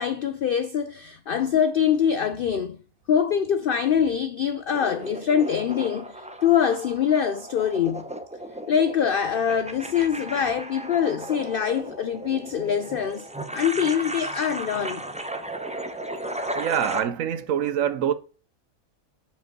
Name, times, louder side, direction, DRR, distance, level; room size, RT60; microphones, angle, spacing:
voice 1, 0.0-2.8 3.1-8.0 8.7-13.3 13.5-15.0, left 8 dB, 75° left, 0.5 m, -24 dB
sound 1, 4.7-17.0, right 1 dB, 10° right, 0.4 m, -35 dB
voice 2, 16.6-18.1, right 9 dB, 75° right, 1.0 m, -25 dB
5.2 x 5.2 x 5.9 m
omnidirectional pair, 1.4 m